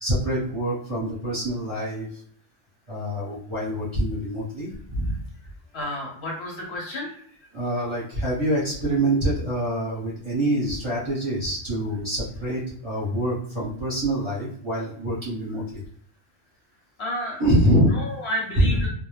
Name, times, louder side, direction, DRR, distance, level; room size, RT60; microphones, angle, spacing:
voice 1, 0.0-2.2 2.9-5.2 7.5-15.8 17.4-17.9 18.6-18.9, right 1 dB, 25° right, -9 dB, 0.8 m, -25 dB
voice 2, 5.7-7.1 17.0-17.4 17.9-18.9, left 1 dB, 60° left, -2 dB, 0.9 m, -31 dB
2.3 x 2.0 x 3.1 m, 0.62 s
omnidirectional pair, 1.3 m